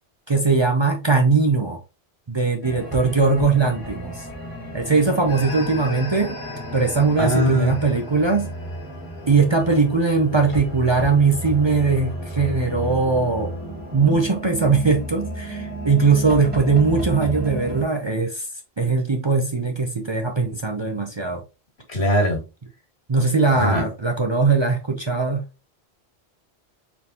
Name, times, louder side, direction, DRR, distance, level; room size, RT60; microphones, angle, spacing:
voice 1, 0.3-1.8 2.3-4.3 4.7-6.4 6.7-8.5 9.3-13.5 13.9-18.5 18.8-21.4 23.1-25.4, right 4 dB, 35° right, 0.5 m, -20 dB
sound 1, 2.6-17.8, right 1 dB, 10° right, 1.6 m, -33 dB
voice 2, 7.2-7.7 21.9-22.4 23.6-23.9, equal, 85° left, 2.0 m, -20 dB
4.6 x 3.6 x 2.8 m
omnidirectional pair, 1.1 m